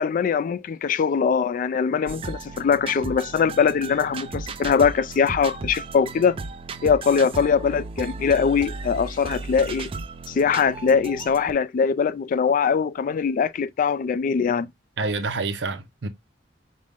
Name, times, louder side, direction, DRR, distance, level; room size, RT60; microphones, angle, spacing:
voice 1, 0.0-6.4 6.8-9.9 10.3-14.7, left 6 dB, 45° left, 0.3 m, -22 dB
sound 1, 2.1-11.5, right 4 dB, 30° right, 0.4 m, -35 dB
voice 2, 15.0-16.1, right 3 dB, 70° right, 0.7 m, -27 dB
5.1 x 2.1 x 3.5 m
head